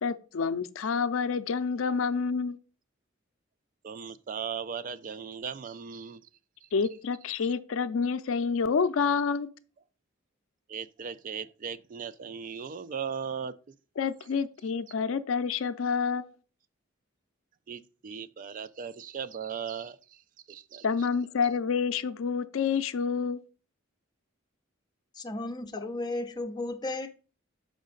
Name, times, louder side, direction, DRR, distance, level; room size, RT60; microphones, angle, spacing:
voice 1, 0.0-2.6 6.7-9.5 14.0-16.3 20.8-23.4, left 5 dB, 75° left, 0.5 m, -28 dB
voice 2, 3.8-6.3 6.6-6.7 10.7-13.7 17.7-20.2 20.5-20.8, right 7 dB, 40° right, 0.3 m, -38 dB
voice 3, 25.1-27.1, left 2 dB, 20° left, 0.7 m, -34 dB
6.4 x 5.1 x 3.8 m
head